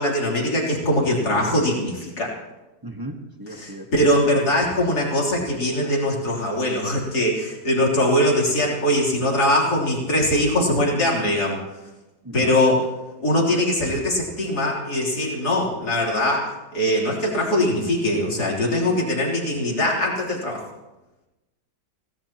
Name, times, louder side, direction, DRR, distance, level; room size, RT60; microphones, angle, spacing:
voice 1, 0.0-2.3 3.5-11.6 12.3-12.9 13.2-20.6, left 1 dB, 55° left, -3 dB, 3.9 m, -22 dB
voice 2, 2.8-3.9 12.2-12.6, right 1 dB, 15° right, 3 dB, 1.2 m, -35 dB
25.0 x 17.5 x 3.0 m, 1.0 s
omnidirectional pair, 2.0 m